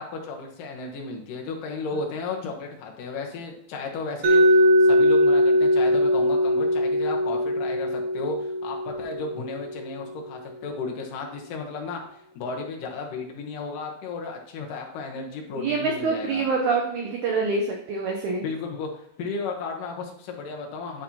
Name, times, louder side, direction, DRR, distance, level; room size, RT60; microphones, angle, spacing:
voice 1, 0.0-12.0 12.4-16.5 18.4-21.0, left 3 dB, 70° left, 1 dB, 2.5 m, -34 dB
Mallet percussion, 4.2-10.1, equal, 60° right, 2.2 m, -21 dB
voice 2, 15.6-17.6 17.9-18.4, right 4 dB, 80° right, 1 dB, 1.7 m, -25 dB
11.5 x 4.3 x 2.8 m, 0.71 s
omnidirectional pair, 4.4 m